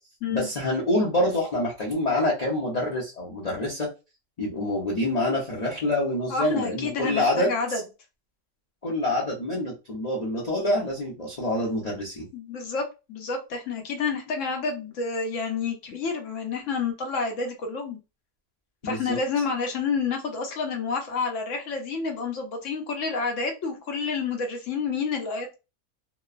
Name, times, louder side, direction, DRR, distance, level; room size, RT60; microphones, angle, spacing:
voice 1, 0.3-3.9 4.4-7.8 8.8-12.3 18.8-19.2, left 1 dB, 35° left, -5 dB, 0.7 m, -26 dB
voice 2, 6.3-7.8 12.3-18.0 18.8-25.6, left 4 dB, 65° left, 3 dB, 1.0 m, -29 dB
2.9 x 2.1 x 2.4 m, 0.28 s
omnidirectional pair, 1.5 m